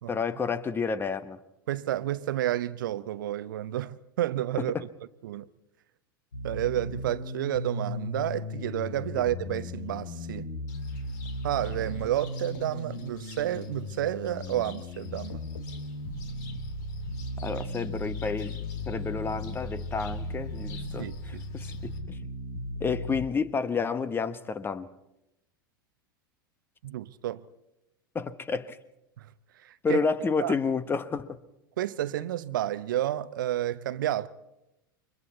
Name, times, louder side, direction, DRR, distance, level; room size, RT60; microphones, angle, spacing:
voice 1, 0.1-1.4 17.4-18.6 18.9-22.2 22.8-24.9 28.1-28.8 29.8-31.3, left 5 dB, 20° left, 1.1 m, -30 dB
voice 2, 1.7-4.9 5.2-5.4 6.4-10.5 11.4-15.4 21.0-21.4 26.8-27.4 29.2-29.3 29.6-30.0 30.4-30.5 31.8-34.3, right 13 dB, 65° right, 0.8 m, -30 dB
sound 1, 6.3-23.3, left 1 dB, 75° left, 2.5 m, -36 dB
Cricket, 10.7-22.0, left 6 dB, 55° left, 2.7 m, -51 dB
29.0 x 24.0 x 4.2 m
figure-of-eight pair, 85°, 12 cm